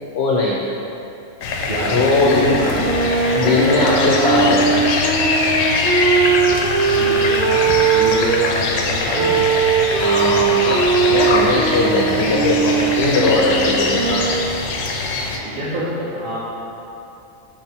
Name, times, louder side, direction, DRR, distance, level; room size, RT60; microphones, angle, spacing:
voice 1, 0.1-0.6 1.9-2.4 3.3-4.8 10.0-14.3, left 2 dB, 65° left, -4 dB, 0.8 m, -19 dB
sound 1, 1.4-15.4, left 3 dB, 90° left, 1.0 m, -22 dB
voice 2, 1.7-4.5 6.9-9.4 15.4-16.4, equal, 85° right, -6 dB, 1.6 m, -25 dB
sound 2, 2.6-8.5 9.2-14.6, right 6 dB, 50° right, 0.7 m, -19 dB
5.5 x 5.2 x 3.4 m, 2.7 s
omnidirectional pair, 1.3 m